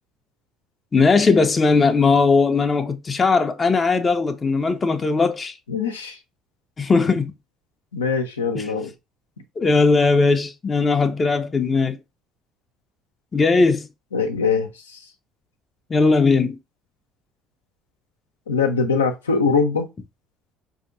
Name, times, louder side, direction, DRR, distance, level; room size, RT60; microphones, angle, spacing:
voice 1, 0.9-5.5 6.8-7.3 8.5-8.6 9.6-12.0 13.3-13.9 15.9-16.6, left 4 dB, 30° left, 0.6 m, -18 dB
voice 2, 5.7-6.2 7.9-8.9 14.1-15.0 18.5-19.9, left 5 dB, 85° left, 0.7 m, -22 dB
5.1 x 2.8 x 2.6 m
figure-of-eight pair, 55°, 0 cm